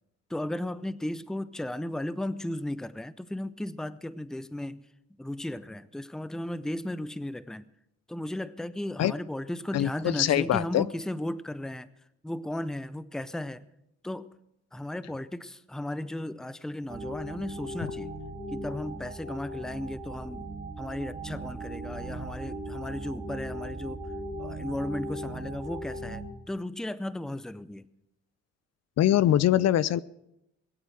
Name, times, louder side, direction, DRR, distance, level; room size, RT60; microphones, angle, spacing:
voice 1, 0.3-4.9 5.2-7.7 8.1-11.9 12.2-13.6 14.0-14.3 14.7-18.2 18.5-24.0 24.4-27.9, left 1 dB, ahead, 16 dB, 0.6 m, -35 dB
voice 2, 9.7-10.9 29.0-30.0, left 12 dB, 60° left, 19 dB, 0.5 m, -23 dB
sound 1, 16.9-26.3, right 1 dB, 20° right, 2.9 m, -38 dB
21.0 x 8.3 x 6.2 m, 0.85 s
cardioid pair, 90°, 30 cm